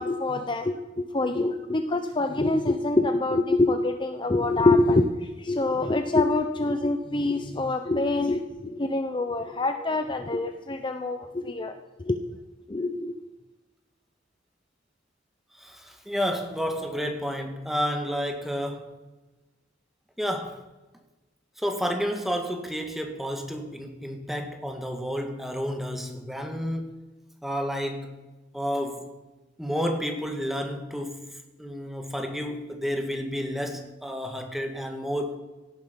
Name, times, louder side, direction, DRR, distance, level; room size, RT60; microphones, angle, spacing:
voice 1, 0.0-5.1 5.4-12.2 12.7-13.1, left 2 dB, 30° left, 7 dB, 0.8 m, -25 dB
voice 2, 15.5-19.0 20.2-20.6 21.6-27.0 27.4-28.2 28.5-29.2 29.6-35.4, equal, ahead, 3 dB, 1.9 m, -31 dB
17.0 x 10.5 x 5.3 m, 1.1 s
head